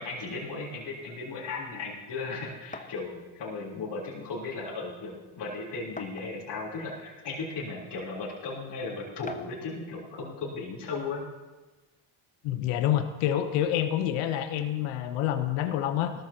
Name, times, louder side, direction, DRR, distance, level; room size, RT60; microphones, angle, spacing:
voice 1, 0.0-11.2, left 3 dB, 60° left, -5 dB, 3.6 m, -36 dB
sound 1, 2.7-3.0 4.1-4.2 4.7-4.8 6.0-6.6 7.4-7.5 9.3-9.6, left 3 dB, 15° left, 0.9 m, -43 dB
voice 2, 12.4-16.1, left 11 dB, 85° left, 9 dB, 0.9 m, -27 dB
17.5 x 13.0 x 2.9 m, 1.2 s
supercardioid pair, 65°, 48 cm